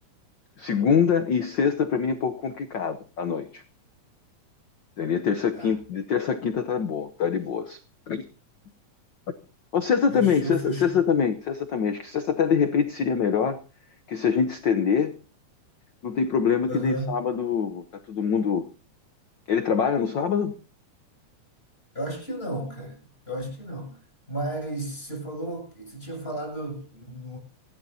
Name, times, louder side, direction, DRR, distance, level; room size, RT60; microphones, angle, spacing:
voice 1, 0.6-3.6 5.0-7.8 8.1-8.2 9.7-13.6 14.1-15.1 16.0-18.7 19.5-20.5, left 6 dB, 80° left, 1.0 m, -24 dB
voice 2, 10.1-11.0 16.7-17.2 21.9-23.0 23.3-24.0 24.3-27.4, right 1 dB, 20° left, 7.9 m, -33 dB
27.5 x 12.0 x 2.8 m
omnidirectional pair, 3.3 m